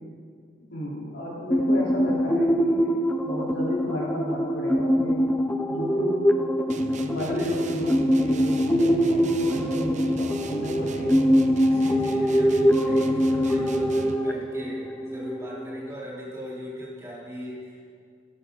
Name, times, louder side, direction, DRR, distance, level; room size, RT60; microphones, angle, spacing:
voice 1, 0.7-5.2 5.7-6.3 7.0-11.2, left 1 dB, 85° left, -5 dB, 3.9 m, -32 dB
sound 1, 1.5-15.9, equal, 10° left, 0.7 m, -23 dB
sound 2, 6.7-14.3, right 2 dB, 40° right, 0.7 m, -38 dB
voice 2, 11.6-17.8, equal, 15° right, -7 dB, 3.8 m, -39 dB
17.0 x 11.0 x 4.0 m, 2.2 s
head